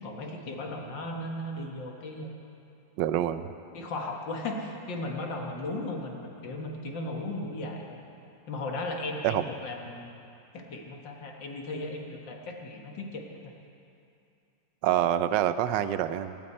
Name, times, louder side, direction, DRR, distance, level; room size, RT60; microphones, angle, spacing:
voice 1, 0.0-2.3 3.7-8.0 8.5-10.1 10.5-13.4, left 2 dB, 75° left, 1 dB, 2.2 m, -36 dB
voice 2, 3.0-3.5 9.2-9.4 14.8-16.4, right 11 dB, 75° right, 12 dB, 1.2 m, -26 dB
17.5 x 16.5 x 4.3 m, 2.6 s
omnidirectional pair, 2.0 m